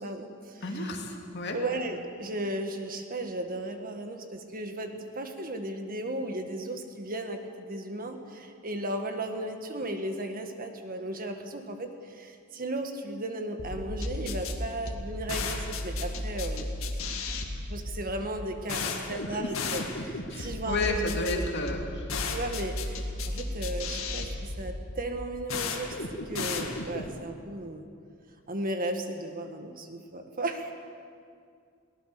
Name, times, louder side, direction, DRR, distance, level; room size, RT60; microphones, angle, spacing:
voice 1, 0.0-0.9 1.5-16.7 17.7-21.0 21.3-21.4 21.8-21.9 22.3-25.9 26.2-27.9 28.5-30.7, right 1 dB, 45° right, 5 dB, 1.7 m, -35 dB
voice 2, 0.6-1.6 18.8-18.9 20.3-22.0, left 2 dB, 55° left, 2 dB, 2.6 m, -32 dB
sound 1, 13.6-27.2, left 2 dB, 90° left, 2.0 m, -34 dB
22.5 x 17.5 x 6.8 m, 2.3 s
head